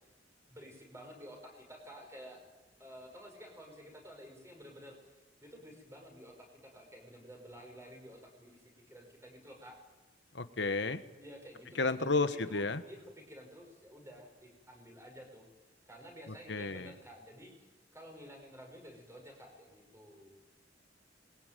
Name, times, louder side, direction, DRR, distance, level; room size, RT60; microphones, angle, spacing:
voice 1, 0.5-2.4 2.8-9.8 11.2-15.5 15.9-20.3, equal, 15° right, 2 dB, 5.9 m, -52 dB
voice 2, 10.3-11.0 11.7-12.8 16.5-16.9, left 3 dB, 65° left, 11 dB, 1.4 m, -32 dB
27.0 x 22.0 x 9.3 m, 1.1 s
head